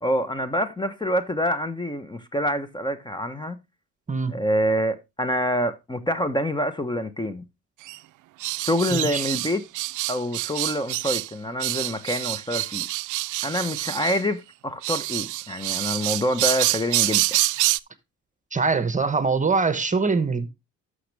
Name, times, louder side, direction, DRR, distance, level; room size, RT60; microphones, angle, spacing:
voice 1, 0.0-3.6 4.3-7.4 8.6-9.6 10.1-12.9 13.4-17.4, equal, 15° left, 1.0 m, -26 dB
sound 1, 7.9-8.0 8.4-11.3 11.6-14.2 14.8-17.8, right 18 dB, 80° right, 0.4 m, -26 dB
voice 2, 8.9-9.2 18.5-20.5, right 4 dB, 25° right, 1.1 m, -23 dB
11.5 x 6.5 x 3.4 m
cardioid pair, 90°, 30 cm